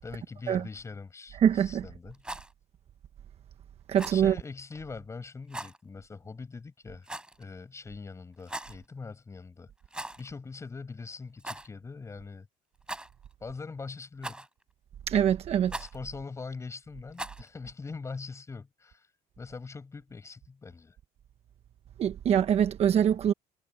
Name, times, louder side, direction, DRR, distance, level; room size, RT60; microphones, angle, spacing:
voice 1, 0.0-2.2 4.1-7.1 7.4-9.7 10.2-12.5 13.4-14.5 15.8-19.1 19.4-21.0, left 4 dB, 20° left, 6.1 m, -42 dB
voice 2, 1.4-1.8 3.9-4.4 15.1-15.7 22.0-23.3, right 9 dB, 45° right, 1.2 m, -24 dB
Rattle, 2.1-2.5 3.9-4.2 5.5-5.8 7.0-7.4 8.4-8.8 9.9-10.3 10.6-10.7 11.4-11.7 12.8-13.3 14.2-14.6 15.7-16.0 17.1-17.5, right 1 dB, 5° right, 5.0 m, -39 dB
cardioid pair, 150°, 15 cm